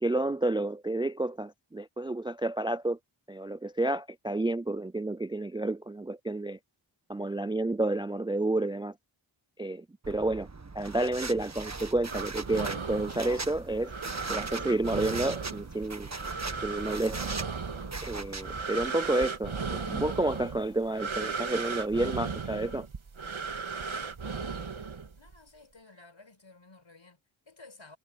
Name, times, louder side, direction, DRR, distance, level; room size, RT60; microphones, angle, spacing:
voice 1, 0.0-3.0 3.3-6.6 7.1-8.9 9.6-10.5 10.7-13.9 14.3-16.1 16.6-17.2 18.0-22.9, right 2 dB, 10° right, 0.3 m, -30 dB
sound 1, 10.0-18.6, right 3 dB, 35° right, 1.4 m, -40 dB
sound 2, 12.1-25.4, right 4 dB, 70° right, 2.0 m, -36 dB
voice 2, 25.2-28.0, left 3 dB, 65° left, 6.3 m, -54 dB
wide cardioid pair, 45°, 49 cm